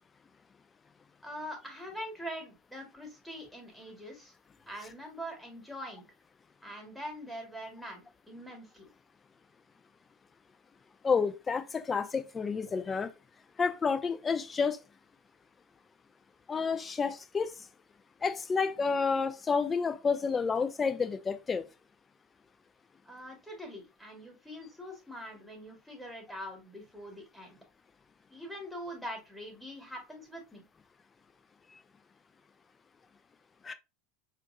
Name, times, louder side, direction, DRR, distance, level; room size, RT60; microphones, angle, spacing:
voice 1, 1.2-4.3 4.7-6.0 6.6-8.9 23.1-27.6 28.3-30.7, equal, ahead, 1.7 m, -43 dB
voice 2, 11.0-13.1 13.6-14.8 16.5-17.5 18.2-21.6 33.6-33.7, left 5 dB, 25° left, 0.5 m, -30 dB
4.4 x 2.5 x 2.6 m
hypercardioid pair, 90°, 0 cm